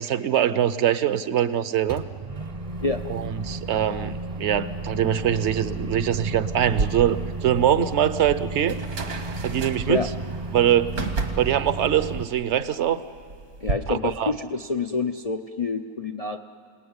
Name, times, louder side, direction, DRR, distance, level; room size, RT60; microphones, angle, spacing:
voice 1, 0.0-2.0 3.1-8.8 9.4-10.1 10.5-10.9 11.4-13.0 13.9-14.3, right 10 dB, 55° right, 14 dB, 1.0 m, -23 dB
Microwave oven, 1.9-12.2, right 2 dB, 30° right, 0.7 m, -33 dB
sound 1, 6.7-13.7, right 3 dB, 70° right, 2.1 m, -33 dB
voice 2, 13.6-16.4, left 4 dB, 60° left, 5 dB, 0.3 m, -27 dB
28.5 x 19.0 x 9.6 m, 2.3 s
omnidirectional pair, 1.6 m